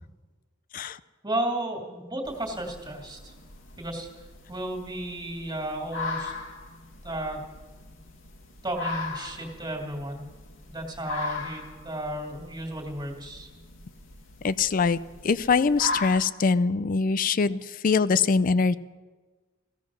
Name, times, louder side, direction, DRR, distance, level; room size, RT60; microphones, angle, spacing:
voice 1, 1.2-3.3 3.8-4.1 4.5-6.3 7.0-7.4 8.6-10.3 10.7-13.5, right 1 dB, 20° right, 2 dB, 2.5 m, -33 dB
sound 1, 2.3-16.2, left 3 dB, 75° left, 1.8 m, -39 dB
voice 2, 14.4-18.8, left 4 dB, 45° left, 16 dB, 0.4 m, -23 dB
16.0 x 14.5 x 6.3 m, 1.3 s
head